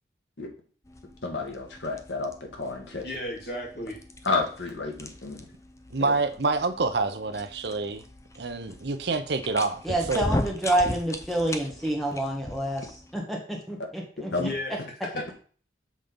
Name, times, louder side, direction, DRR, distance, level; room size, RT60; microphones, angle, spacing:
sound 1, 0.9-13.2, left 1 dB, 15° left, 0.6 m, -38 dB
voice 1, 1.2-3.0 4.2-5.4 6.0-6.1 14.3-14.5, left 3 dB, 90° left, 3 dB, 1.6 m, -30 dB
voice 2, 2.9-3.9 14.3-14.7 15.0-15.3, left 1 dB, 60° left, -1 dB, 2.3 m, -34 dB
voice 3, 5.9-8.0 8.4-10.2, right 3 dB, 65° right, 10 dB, 0.7 m, -27 dB
voice 4, 9.8-12.8 13.1-14.3, right 1 dB, ahead, 0 dB, 1.5 m, -28 dB
7.5 x 3.9 x 5.2 m, 0.43 s
head